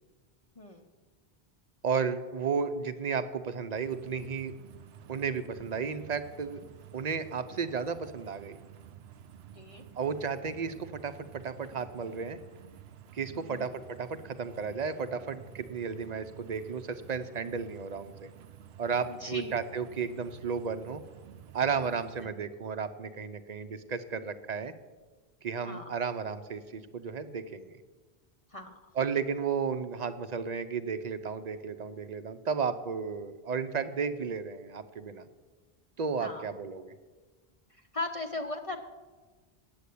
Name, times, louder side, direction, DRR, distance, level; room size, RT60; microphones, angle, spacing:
voice 1, 0.6-0.9 9.5-9.8 13.3-13.7 19.1-19.5 22.2-22.3 25.6-25.9 28.5-28.8 36.2-36.4 37.7-38.8, left 2 dB, 40° left, 3 dB, 0.7 m, -38 dB
voice 2, 1.8-4.5 5.1-6.6 6.9-8.6 10.0-12.4 13.1-18.3 18.8-21.0 21.5-24.7 25.4-27.8 29.0-35.3 36.0-36.9, right 5 dB, 50° right, 11 dB, 0.7 m, -33 dB
sound 1, 3.8-22.3, right 9 dB, 85° right, 0.8 m, -51 dB
8.6 x 8.2 x 8.4 m, 1.3 s
omnidirectional pair, 1.0 m